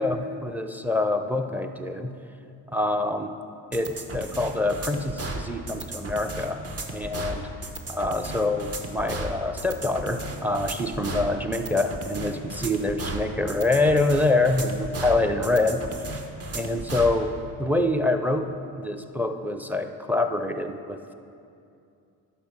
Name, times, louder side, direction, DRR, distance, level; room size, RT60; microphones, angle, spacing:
voice 1, 0.0-2.1 2.7-3.3 3.7-6.6 6.9-7.5 7.9-15.8 16.5-18.5 18.8-21.0, left 2 dB, 5° right, 7 dB, 0.5 m, -25 dB
sound 1, 3.7-17.2, right 2 dB, 35° right, 1.0 m, -35 dB
11.0 x 4.4 x 6.1 m, 2.6 s
supercardioid pair, 75°, 40 cm